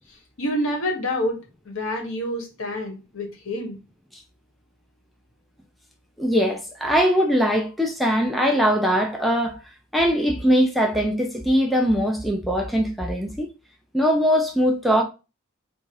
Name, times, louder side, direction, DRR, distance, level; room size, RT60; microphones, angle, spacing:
voice 1, 0.4-1.4 1.6-3.8, left 1 dB, 65° left, 1.3 m, -27 dB
voice 2, 6.2-9.6 9.9-13.5 13.9-15.0, equal, ahead, 0.4 m, -21 dB
3.6 x 2.6 x 4.6 m
head